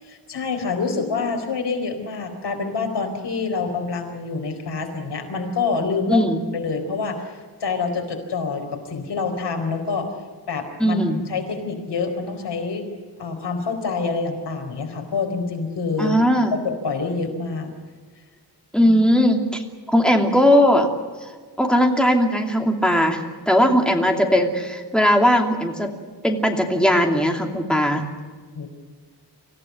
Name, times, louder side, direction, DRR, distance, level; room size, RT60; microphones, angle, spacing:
voice 1, 0.0-6.3 6.5-10.1 10.5-11.0 11.3-12.9 13.2-16.2 16.5-17.7 28.6-28.7, left 4 dB, 85° left, 4 dB, 4.5 m, -26 dB
voice 2, 6.1-6.4 10.8-11.2 16.0-16.5 18.7-19.6 19.9-20.9 21.6-23.2 23.5-25.9 26.2-28.0, equal, ahead, 2 dB, 2.7 m, -18 dB
25.5 x 15.5 x 9.5 m, 1.5 s
wide cardioid pair, 165°, 40 cm